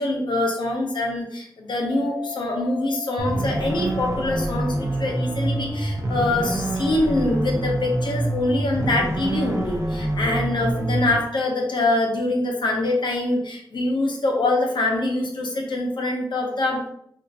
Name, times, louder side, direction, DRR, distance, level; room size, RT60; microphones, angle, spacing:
voice 1, 0.0-16.8, left 2 dB, 90° left, 1 dB, 0.7 m, -24 dB
sound 1, 1.9-8.9, left 7 dB, 5° right, 1.0 m, -42 dB
sound 2, 3.2-11.1, right 1 dB, 40° right, 0.5 m, -26 dB
3.5 x 2.4 x 2.7 m, 0.72 s
wide cardioid pair, 90°, 8 cm